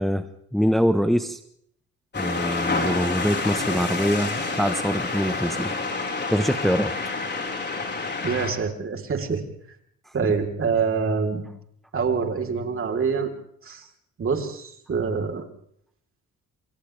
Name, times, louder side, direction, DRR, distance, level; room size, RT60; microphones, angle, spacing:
voice 1, 0.0-1.4 2.2-5.7 6.3-6.9, equal, ahead, 8 dB, 1.2 m, -24 dB
sound 1, 2.1-8.5, left 3 dB, 35° left, 4.9 m, -28 dB
voice 2, 8.2-9.4 10.1-11.4 11.9-13.3 13.6-13.8 14.2-15.4, right 5 dB, 45° right, 4 dB, 3.9 m, -25 dB
28.5 x 27.0 x 3.4 m, 0.67 s
cardioid pair, 90°, 30 cm